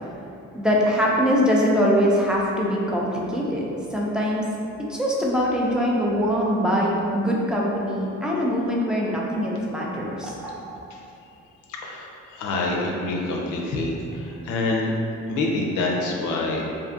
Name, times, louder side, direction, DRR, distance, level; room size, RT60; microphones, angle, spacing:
voice 1, 0.5-4.5 4.9-10.8, equal, 5° right, -4 dB, 0.4 m, -23 dB
voice 2, 11.7-14.9 15.3-16.6, left 2 dB, 85° left, -1 dB, 0.5 m, -26 dB
2.5 x 2.4 x 2.5 m, 2.7 s
cardioid pair, 90°, 30 cm